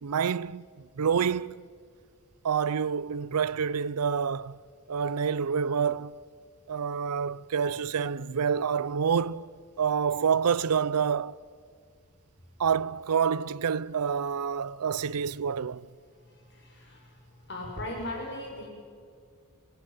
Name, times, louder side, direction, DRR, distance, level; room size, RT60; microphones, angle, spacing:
voice 1, 0.0-0.6 1.0-1.6 2.4-4.6 4.9-6.2 6.7-9.5 9.8-11.4 12.6-15.9, right 7 dB, 80° right, 0.5 m, -27 dB
voice 2, 16.4-17.1 17.5-18.7, left 1 dB, 50° left, 6.4 m, -38 dB
25.0 x 19.5 x 9.2 m
head